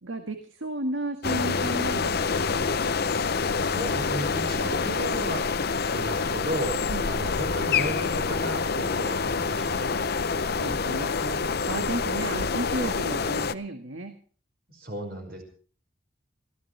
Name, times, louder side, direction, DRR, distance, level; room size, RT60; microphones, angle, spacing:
voice 1, 0.0-3.0 6.9-7.1 9.7-10.1 10.6-14.2, right 1 dB, 75° right, 6 dB, 1.9 m, -34 dB
sound 1, 1.2-13.5, left 5 dB, 50° left, 0.7 m, -27 dB
voice 2, 3.5-5.5 5.9-10.1 14.7-15.4, right 1 dB, 50° right, 2 dB, 5.6 m, -35 dB
26.5 x 15.0 x 3.4 m, 0.42 s
head